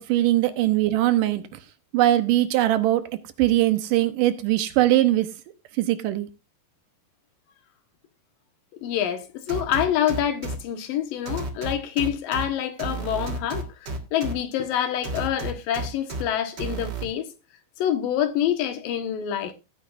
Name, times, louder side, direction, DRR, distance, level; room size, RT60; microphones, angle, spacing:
voice 1, 0.0-1.4 1.9-3.0 3.4-5.3 5.8-6.3, right 14 dB, 80° right, 2.5 m, -21 dB
voice 2, 8.8-17.3 17.8-19.5, left 10 dB, 85° left, 3.1 m, -26 dB
sound 1, 9.5-10.6 11.3-12.4 12.8-14.3 15.0-16.2 16.6-17.0, right 3 dB, 40° right, 1.7 m, -31 dB
17.0 x 9.5 x 2.5 m
omnidirectional pair, 3.9 m